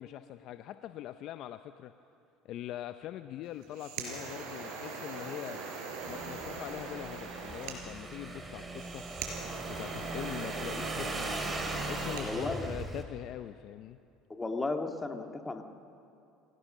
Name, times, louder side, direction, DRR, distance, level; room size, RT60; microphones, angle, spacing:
voice 1, 0.0-1.9 2.4-5.6 6.0-9.0 9.7-11.2 11.8-14.0, left 12 dB, 60° left, 10 dB, 0.6 m, -42 dB
sound 1, 3.5-12.3, right 4 dB, 75° right, 4.5 m, -41 dB
Motorcycle / Engine, 6.0-13.0, right 2 dB, 20° right, 2.9 m, -39 dB
voice 2, 12.2-12.7 14.3-15.6, left 3 dB, 15° left, 4 dB, 1.9 m, -34 dB
26.5 x 17.0 x 6.6 m, 2.6 s
supercardioid pair, 95°, 0 cm